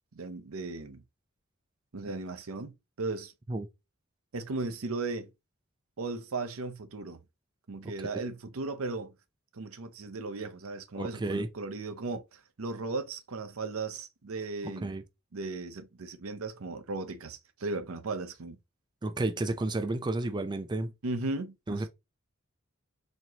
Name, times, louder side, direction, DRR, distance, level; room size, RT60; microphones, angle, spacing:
voice 1, 0.1-1.0 1.9-3.3 4.3-5.3 6.0-7.2 7.7-9.1 9.5-15.0 15.3-18.6 21.0-21.9, right 3 dB, 90° right, 0.7 m, -36 dB
voice 2, 10.9-11.5 14.6-15.0 19.0-20.9 21.7-21.9, right 2 dB, 20° right, 0.4 m, -31 dB
4.2 x 3.0 x 2.8 m
head